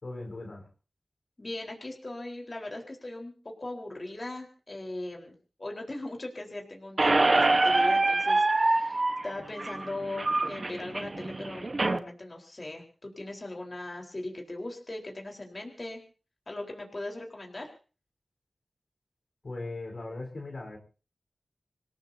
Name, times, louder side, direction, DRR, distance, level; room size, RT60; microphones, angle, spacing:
voice 1, 0.0-0.7 19.4-20.8, left 2 dB, 65° left, 2 dB, 4.5 m, -38 dB
voice 2, 1.4-16.0 16.5-17.7, left 2 dB, 45° left, 0 dB, 4.3 m, -39 dB
Squeak, 7.0-12.0, right 2 dB, 50° right, 1.2 m, -25 dB
27.0 x 17.5 x 2.8 m, 0.36 s
cardioid pair, 45°, 0 cm